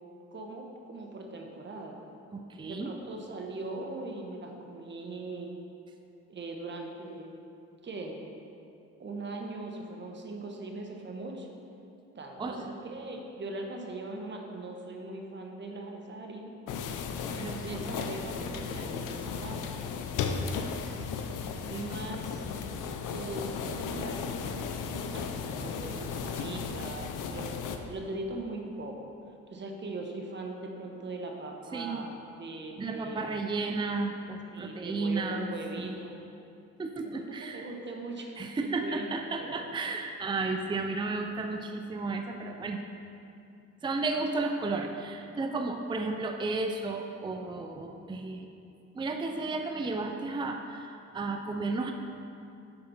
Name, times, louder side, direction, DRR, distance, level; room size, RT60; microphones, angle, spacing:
voice 1, 0.3-2.1 2.7-5.5 6.3-7.3 7.8-8.3 9.0-11.5 12.1-16.5 17.6-19.7 21.7-22.4 23.1-24.4 24.9-29.1 29.5-33.5 34.5-36.2 37.0-39.1 39.4-39.6, right 2 dB, 35° right, 2 dB, 1.2 m, -40 dB
voice 2, 2.3-2.9 12.4-12.7 17.3-17.9 21.5-21.8 31.7-32.1 32.8-35.5 35.8-36.0 36.8-37.7 38.4-42.8 43.8-48.5 48.9-51.9, right 3 dB, 15° right, 4 dB, 0.5 m, -33 dB
sound 1, 16.7-27.8, left 6 dB, 85° left, 0.7 m, -35 dB
9.8 x 4.2 x 5.7 m, 2.6 s
cardioid pair, 90°, 30 cm